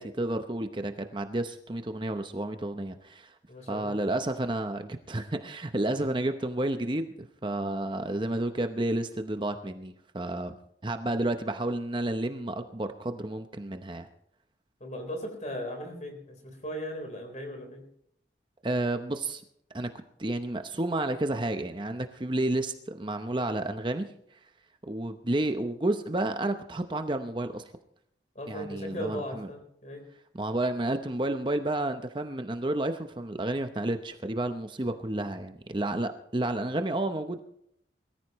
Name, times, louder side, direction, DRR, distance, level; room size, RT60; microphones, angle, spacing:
voice 1, 0.0-3.3 3.7-10.5 10.8-14.1 18.6-19.4 19.7-19.9 20.2-24.1 24.9-27.6 28.5-29.5 30.4-37.4, right 1 dB, 25° right, 7 dB, 0.8 m, -31 dB
voice 2, 3.5-3.9 14.8-17.8 28.3-30.0, equal, 40° left, 4 dB, 4.1 m, -37 dB
22.0 x 14.5 x 3.1 m, 0.71 s
head